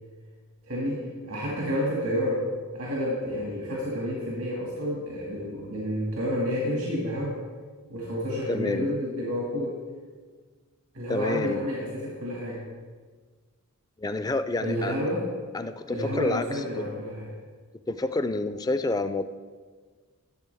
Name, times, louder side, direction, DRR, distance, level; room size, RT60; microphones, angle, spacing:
voice 1, 0.6-2.4 2.7-7.4 7.9-9.8 10.9-12.7 14.6-15.3 15.9-17.3, equal, 80° right, -5 dB, 2.1 m, -30 dB
voice 2, 8.5-8.9 11.1-11.6 14.0-14.9 15.5-16.4 17.9-19.2, left 2 dB, 15° left, 11 dB, 0.3 m, -28 dB
13.5 x 7.3 x 3.5 m, 1.5 s
head